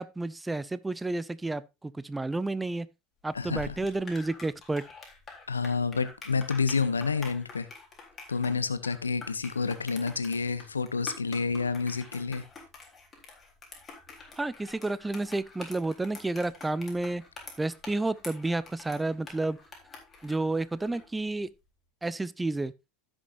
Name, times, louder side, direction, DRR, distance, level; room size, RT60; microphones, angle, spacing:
voice 1, 0.0-2.9 3.2-4.8 14.4-17.2 17.6-19.6 20.2-21.5 22.0-22.7, right 2 dB, 10° right, 0.6 m, -31 dB
voice 2, 3.3-3.8 5.5-7.7 8.3-12.4, left 5 dB, 85° left, 0.8 m, -29 dB
sound 1, 3.3-21.1, left 4 dB, 30° left, 3.8 m, -47 dB
16.0 x 6.3 x 2.6 m
figure-of-eight pair, 70°, 0 cm